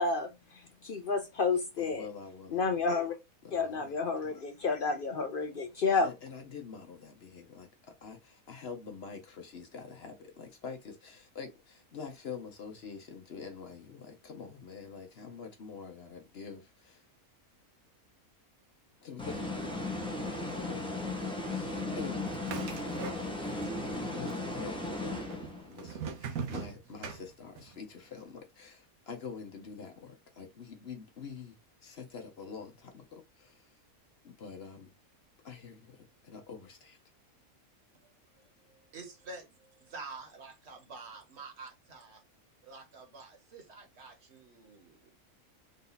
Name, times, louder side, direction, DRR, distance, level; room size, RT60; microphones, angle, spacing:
voice 1, 0.0-2.1 2.5-3.2 3.5-6.1, left 4 dB, 70° left, 0.5 m, -30 dB
voice 2, 1.8-2.9 3.4-4.1 6.0-7.7 8.0-17.1 19.0-19.8 20.5-20.9 21.5-22.2 23.4-23.6 23.9-33.7 34.2-34.9 35.4-37.0, left 5 dB, 50° left, 0.9 m, -46 dB
sound 1, 19.2-25.8, left 2 dB, 5° left, 0.7 m, -36 dB
sound 2, 22.2-23.7 23.9-24.7 25.3-27.8, right 5 dB, 75° right, 1.3 m, -40 dB
voice 3, 38.0-42.2 42.6-45.2, right 3 dB, 50° right, 1.5 m, -49 dB
3.9 x 2.7 x 3.8 m
omnidirectional pair, 1.5 m